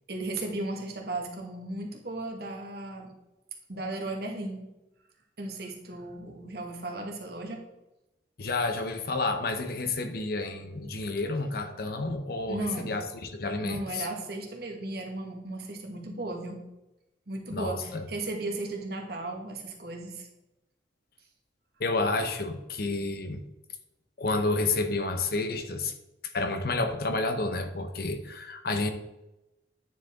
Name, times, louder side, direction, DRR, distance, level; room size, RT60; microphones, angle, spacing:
voice 1, 0.1-3.1 3.7-4.6 5.4-7.6 12.5-12.9 13.6-16.6 17.3-20.3, right 2 dB, 60° right, 1 dB, 1.4 m, -35 dB
voice 2, 8.4-14.1 17.5-18.0 21.8-23.4 24.2-25.9 26.3-28.9, left 3 dB, 55° left, 8 dB, 0.8 m, -30 dB
9.2 x 4.8 x 3.5 m, 0.94 s
head